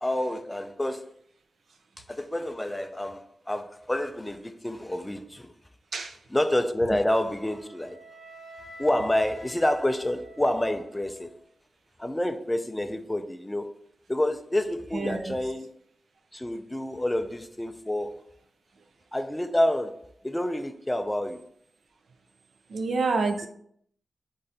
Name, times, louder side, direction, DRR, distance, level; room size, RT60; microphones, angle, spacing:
voice 1, 0.0-1.1 2.1-5.5 6.3-8.0 8.8-11.3 12.0-13.7 14.1-15.7 16.3-18.2 19.1-21.4, left 1 dB, 10° left, 0.3 m, -28 dB
Wind instrument woodwind instrument, 7.4-11.4, right 2 dB, 50° right, 1.1 m, -47 dB
voice 2, 14.9-15.3 22.7-23.5, right 3 dB, 70° right, 0.5 m, -27 dB
4.1 x 3.8 x 3.3 m
wide cardioid pair, 180°, 0 cm